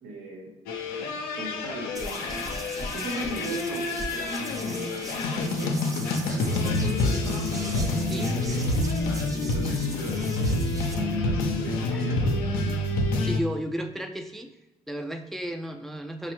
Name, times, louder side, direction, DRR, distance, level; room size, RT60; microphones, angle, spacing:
voice 1, 0.0-0.5 1.4-8.6 9.0-10.5 10.9-12.5, right 1 dB, 75° right, -1 dB, 0.9 m, -38 dB
sound 1, 0.7-13.4, left 2 dB, 80° left, 0.5 m, -27 dB
sound 2, 1.9-10.9, right 1 dB, 20° right, 0.7 m, -40 dB
voice 2, 13.2-14.5 14.9-16.3, equal, ahead, 5 dB, 0.3 m, -33 dB
5.1 x 2.1 x 3.0 m, 0.99 s
supercardioid pair, 60°, 15 cm